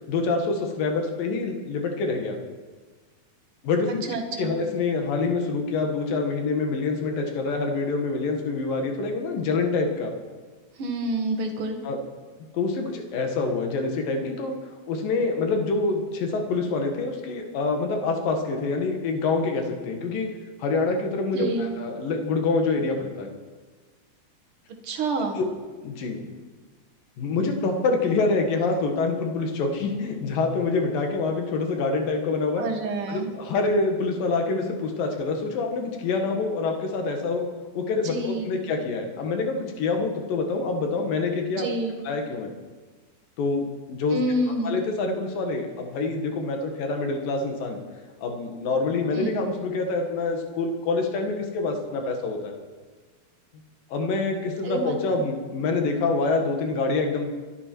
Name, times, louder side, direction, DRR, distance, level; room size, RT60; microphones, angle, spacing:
voice 1, 0.1-2.4 3.6-3.9 4.4-10.1 11.8-12.0 12.5-14.5 14.9-20.3 20.6-23.3 25.4-25.5 25.8-26.3 27.2-32.7 33.1-37.4 37.7-41.7 42.0-42.5 43.4-44.2 44.6-47.8 48.2-52.5 53.9-57.3, left 3 dB, 70° left, 3 dB, 3.4 m, -26 dB
voice 2, 3.9-4.5 10.8-11.8 21.3-21.7 24.8-25.4 32.6-33.3 38.0-38.6 41.5-42.0 44.1-44.8 49.1-49.4 54.6-55.2, right 2 dB, 45° right, 2 dB, 2.0 m, -28 dB
23.5 x 11.0 x 4.6 m, 1.4 s
omnidirectional pair, 4.3 m